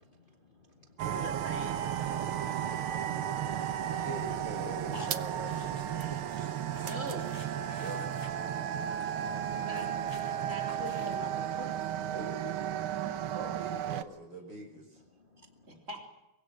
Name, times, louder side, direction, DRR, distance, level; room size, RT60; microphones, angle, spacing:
voice 1, 0.0-1.2 8.6-9.9 10.2-10.4 15.0-15.9, left 3 dB, 25° left, 3 dB, 1.6 m, -64 dB
voice 2, 1.0-2.6 6.8-7.3 9.6-12.1 15.7-16.1, right 1 dB, 35° right, 1 dB, 4.2 m, -44 dB
sound 1, 1.0-14.0, right 10 dB, 85° right, 1.9 m, -34 dB
voice 3, 4.0-6.1 7.8-8.0 12.1-15.0, right 2 dB, 60° right, 5 dB, 5.9 m, -44 dB
sound 2, 4.9-8.3 8.6-8.7 9.0-9.1 9.4-11.3, left 1 dB, 10° left, 4.6 m, -49 dB
24.5 x 21.5 x 7.8 m, 0.91 s
omnidirectional pair, 2.3 m